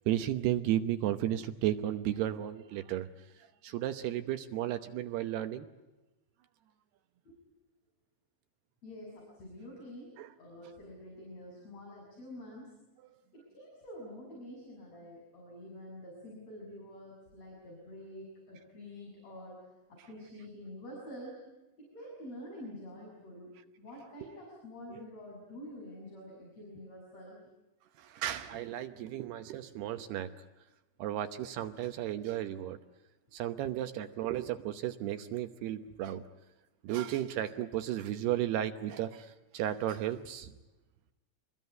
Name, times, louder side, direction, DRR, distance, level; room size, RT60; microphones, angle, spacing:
voice 1, 0.1-3.1 3.6-5.7 10.2-10.3 28.0-30.3 31.0-32.8 33.3-36.2 36.8-40.5, right 12 dB, 75° right, 9 dB, 2.9 m, -34 dB
voice 2, 8.8-12.8 13.3-19.6 20.1-21.5 21.8-27.4, left 1 dB, 35° left, -2 dB, 7.8 m, -47 dB
28.0 x 21.5 x 9.4 m, 1.0 s
omnidirectional pair, 5.1 m